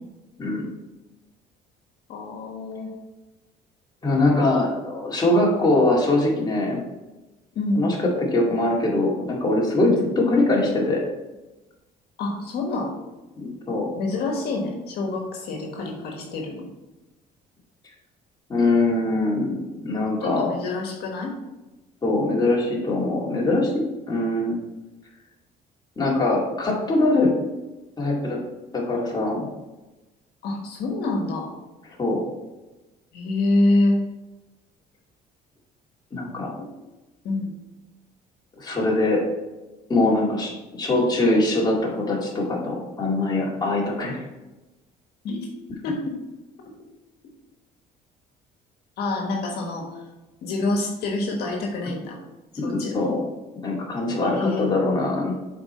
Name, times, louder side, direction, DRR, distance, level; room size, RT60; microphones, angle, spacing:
voice 1, 2.1-2.9 7.5-7.9 12.2-13.0 14.0-16.7 20.2-21.3 30.4-31.5 33.1-34.0 37.2-37.5 45.2-45.5 45.8-46.2 49.0-50.0 50.4-52.2 52.6-53.1 54.2-54.7, left 2 dB, 70° left, 1 dB, 1.4 m, -26 dB
voice 2, 4.0-6.8 7.8-11.0 13.4-13.9 18.5-20.5 22.0-24.6 26.0-27.3 28.0-28.4 28.7-29.5 32.0-32.2 36.1-36.5 38.6-39.2 39.9-44.2 52.6-53.2 53.6-55.3, left 2 dB, 25° left, -3 dB, 2.2 m, -22 dB
7.1 x 4.5 x 4.3 m, 1.1 s
cardioid pair, 110°, 17 cm